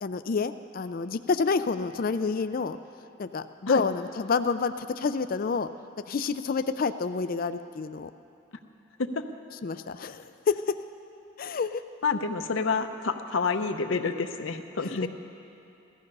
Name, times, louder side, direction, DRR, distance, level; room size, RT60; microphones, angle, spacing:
voice 1, 0.0-2.8 3.2-5.7 6.1-8.1 9.6-10.8 11.4-11.8 14.8-15.1, left 4 dB, 45° left, 10 dB, 0.4 m, -28 dB
voice 2, 12.0-15.1, left 4 dB, 70° left, 6 dB, 0.7 m, -28 dB
16.0 x 14.0 x 5.4 m, 2.8 s
head